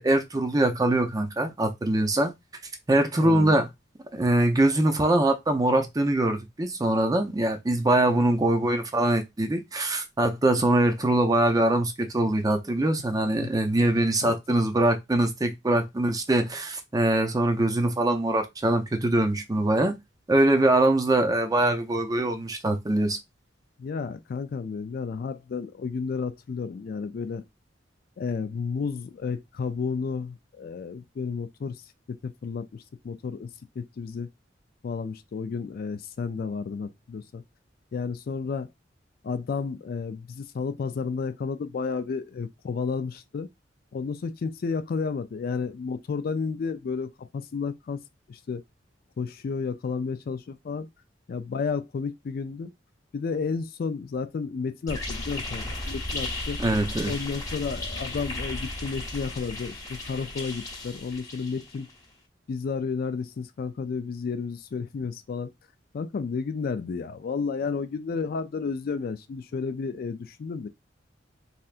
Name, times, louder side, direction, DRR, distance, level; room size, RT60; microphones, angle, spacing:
voice 1, 0.0-2.3 2.9-3.7 4.1-20.0 20.3-23.2 56.6-57.2, right 1 dB, 20° right, 0.5 m, -23 dB
voice 2, 3.2-3.5 13.4-13.5 14.2-14.3 23.8-27.4 28.2-31.8 32.1-33.5 33.8-34.3 34.8-37.4 37.9-38.7 39.2-43.5 43.9-48.0 48.3-48.6 49.2-50.9 51.3-52.7 53.1-56.6 57.1-61.9 62.5-65.5 65.9-70.7, left 5 dB, 55° left, 0.3 m, -32 dB
sound 1, 54.9-61.9, left 2 dB, 20° left, 1.0 m, -35 dB
3.3 x 2.7 x 2.4 m
head